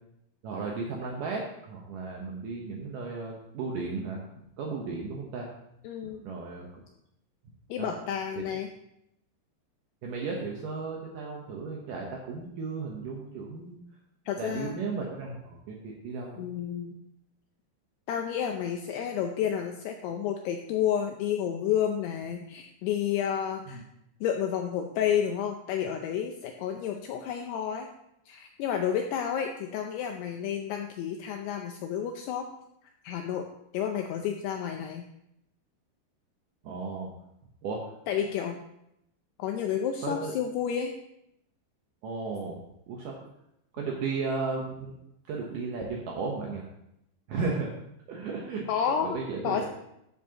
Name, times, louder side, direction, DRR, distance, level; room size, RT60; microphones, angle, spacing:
voice 1, 0.4-4.2 4.6-5.5 6.2-6.7 7.8-7.9 10.0-13.8 14.4-16.4 23.7-23.8 36.6-37.1 37.6-37.8 40.0-40.3 42.0-42.6 42.9-43.1 43.7-44.9 45.3-46.7 47.3-47.7 48.1-48.7 49.0-49.6, right 4 dB, 90° right, -1 dB, 1.8 m, -34 dB
voice 2, 5.8-6.2 7.7-8.7 14.3-14.7 16.4-17.0 18.1-23.8 24.2-27.9 28.3-32.5 33.0-33.4 33.7-35.1 38.1-38.6 39.4-40.9 48.7-49.2 49.4-49.7, left 8 dB, 85° left, 4 dB, 2.4 m, -30 dB
13.5 x 7.5 x 2.9 m, 0.79 s
omnidirectional pair, 5.4 m